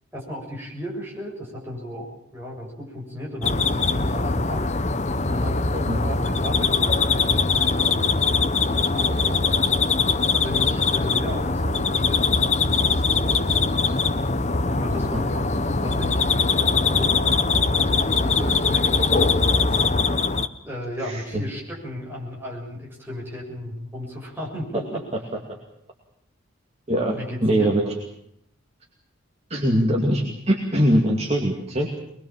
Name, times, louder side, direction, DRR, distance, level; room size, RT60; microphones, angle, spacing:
voice 1, 0.1-4.6 5.3-8.6 8.9-9.7 10.3-14.0 14.6-19.8 20.6-25.0 27.1-27.8, equal, 10° right, -3 dB, 6.9 m, -34 dB
sound 1, 3.4-20.5, left 4 dB, 35° left, 0.9 m, -22 dB
voice 2, 5.7-6.0 21.0-21.4 26.9-27.2 27.4-27.9 29.5-32.0, equal, 30° right, 0 dB, 2.5 m, -22 dB
23.5 x 21.5 x 7.4 m, 0.74 s
head